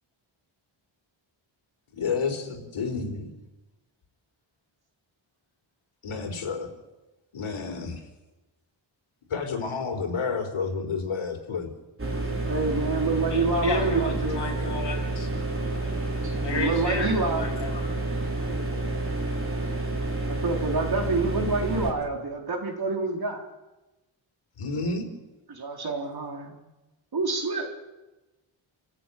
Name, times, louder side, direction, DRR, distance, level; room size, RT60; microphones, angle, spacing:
voice 1, 1.9-3.3 6.0-6.7 7.3-8.1 9.3-11.7 24.6-25.1, left 5 dB, 90° left, 4 dB, 4.1 m, -30 dB
sound 1, 12.0-21.9, right 2 dB, 25° right, 4.4 m, -29 dB
voice 2, 12.5-14.4 16.2-17.5 18.5-18.7 20.3-23.4 25.5-26.6 27.1-27.7, right 3 dB, 50° right, 2 dB, 3.9 m, -27 dB
voice 3, 13.3-15.3 16.4-18.0, left 2 dB, 60° left, 1 dB, 6.5 m, -32 dB
28.5 x 14.5 x 9.3 m, 1.1 s
wide cardioid pair, 150°, 48 cm